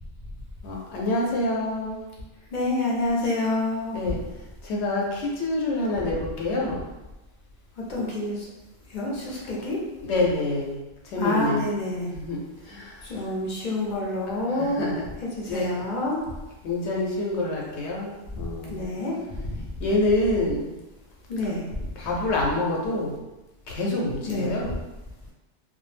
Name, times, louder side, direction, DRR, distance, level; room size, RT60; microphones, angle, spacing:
voice 1, 0.6-2.0 3.9-4.2 4.6-6.8 9.4-9.6 10.0-11.7 12.1-12.4 12.6-13.2 14.5-15.0 15.5-15.9 16.6-18.9 19.8-20.7 22.0-23.2 23.7-24.7, left 2 dB, 80° left, -3 dB, 0.9 m, -27 dB
voice 2, 2.5-4.1 7.9-8.5 8.9-9.8 11.2-12.1 13.0-14.9 15.4-16.2 18.7-19.1 21.3-21.6 24.3-24.5, left 2 dB, 55° left, -3 dB, 0.6 m, -27 dB
2.2 x 2.0 x 3.1 m, 1.0 s
omnidirectional pair, 1.2 m